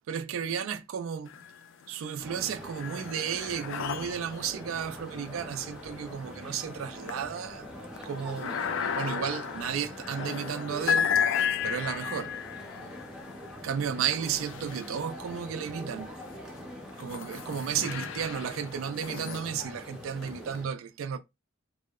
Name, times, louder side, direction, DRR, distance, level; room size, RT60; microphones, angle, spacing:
voice 1, 0.1-1.3 1.9-7.7 8.0-8.6 9.0-11.1 11.6-12.3 13.6-16.1 17.0-21.2, right 8 dB, 80° right, 0.3 m, -33 dB
sound 1, 1.3-1.9 2.3-15.5 16.1-20.6, left 8 dB, 65° left, 0.3 m, -35 dB
sound 2, 2.2-20.7, equal, 5° right, 0.5 m, -44 dB
2.7 x 2.0 x 2.3 m
head